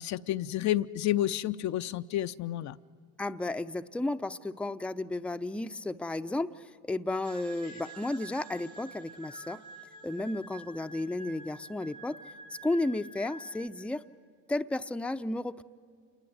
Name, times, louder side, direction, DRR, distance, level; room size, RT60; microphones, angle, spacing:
voice 1, 0.0-2.8, left 13 dB, 50° left, 11 dB, 0.6 m, -30 dB
voice 2, 3.2-9.6 10.0-12.2 12.6-14.0 14.5-15.6, left 2 dB, 5° left, 8 dB, 0.6 m, -33 dB
sound 1, 7.2-13.7, right 2 dB, 50° right, 2.5 m, -48 dB
28.0 x 20.0 x 7.9 m, 2.1 s
supercardioid pair, 80°, 37 cm